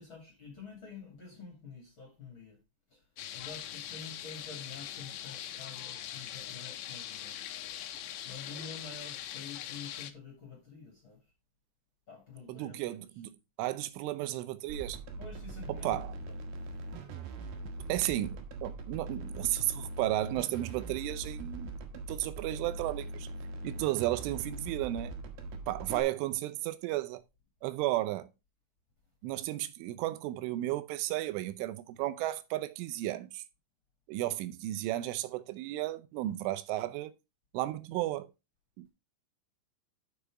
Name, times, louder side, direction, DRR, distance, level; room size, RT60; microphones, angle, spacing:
voice 1, 0.0-2.6 2.9-3.0 3.3-7.6 7.9-11.2 12.1-12.9 15.2-16.0 16.3-17.6, left 4 dB, 35° left, 2.4 m, -49 dB
sound 1, 3.2-10.1, left 11 dB, 90° left, 3.2 m, -42 dB
voice 2, 12.5-15.0 15.7-16.1 17.9-21.7 22.1-23.3 23.6-25.1 25.7-27.2 27.6-28.3 29.2-33.4 34.1-37.1 37.5-38.3 38.8-38.9, right 15 dB, 85° right, 3.2 m, -34 dB
sound 2, 14.7-26.0, right 2 dB, 65° right, 2.9 m, -41 dB
7.0 x 6.6 x 4.8 m
omnidirectional pair, 5.5 m